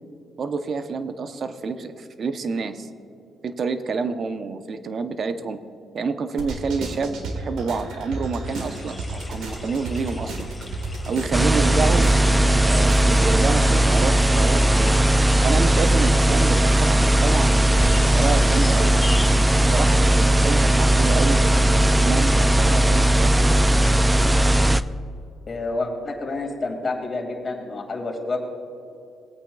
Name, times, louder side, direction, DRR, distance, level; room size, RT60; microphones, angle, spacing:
voice 1, 0.4-2.9 3.4-5.6 5.9-10.5 11.1-12.1 12.6-14.9 15.4-19.0 19.7-23.7, right 4 dB, 50° right, 9 dB, 0.7 m, -28 dB
sound 1, 6.4-13.3, right 2 dB, 85° right, 1.5 m, -32 dB
sound 2, 8.4-23.0, left 2 dB, 10° left, 2.0 m, -40 dB
sound 3, 11.3-24.8, right 1 dB, 10° right, 0.3 m, -18 dB
voice 2, 25.5-28.4, left 2 dB, 35° left, 2 dB, 2.1 m, -28 dB
19.5 x 8.7 x 2.3 m, 2.7 s
cardioid pair, 90°, 0 cm